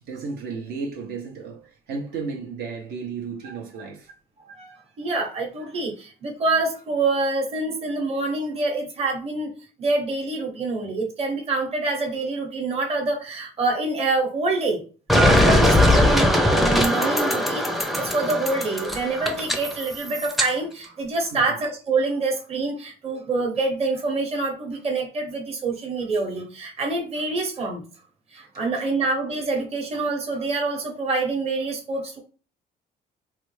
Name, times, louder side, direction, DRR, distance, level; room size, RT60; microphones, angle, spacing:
voice 1, 0.0-4.1 21.3-21.6 28.5-28.8, right 4 dB, 75° right, 0.8 m, -34 dB
voice 2, 4.4-9.5 9.8-14.8 15.1-27.8 28.3-32.2, right 3 dB, 35° right, 1.0 m, -26 dB
sound 1, 15.1-20.5, left 1 dB, ahead, 0.5 m, -20 dB
3.3 x 2.3 x 3.2 m
cardioid pair, 110°, 17 cm